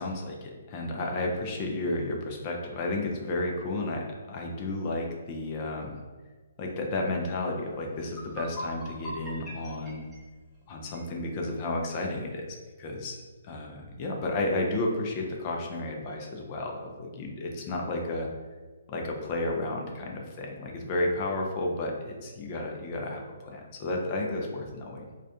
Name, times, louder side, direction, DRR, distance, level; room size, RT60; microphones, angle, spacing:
voice 1, 0.0-6.0 6.6-10.1 10.7-18.3 18.9-25.1, left 2 dB, 35° left, 0 dB, 0.4 m, -32 dB
sound 1, 7.6-7.7 8.0-11.1, right 1 dB, ahead, 0.7 m, -41 dB
2.3 x 2.2 x 2.7 m, 1.3 s
hypercardioid pair, 145°, 0 cm